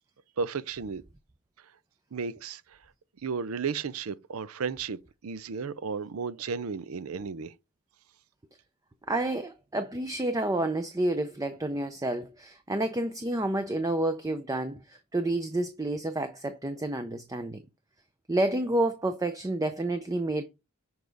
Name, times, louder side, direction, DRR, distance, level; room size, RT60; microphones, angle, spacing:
voice 1, 0.4-1.0 2.1-2.6 3.2-7.5, right 5 dB, 75° right, 0.5 m, -33 dB
voice 2, 9.1-17.6 18.3-20.4, right 1 dB, 15° right, 0.5 m, -29 dB
7.1 x 4.9 x 3.9 m
head